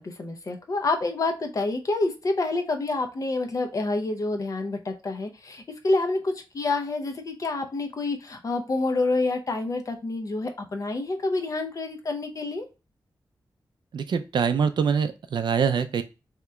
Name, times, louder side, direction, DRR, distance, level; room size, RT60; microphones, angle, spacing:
voice 1, 0.0-12.7, left 2 dB, 40° left, 5 dB, 0.5 m, -28 dB
voice 2, 13.9-16.0, right 6 dB, 65° right, 10 dB, 0.4 m, -24 dB
2.9 x 2.1 x 3.5 m, 0.30 s
wide cardioid pair, 145°, 8 cm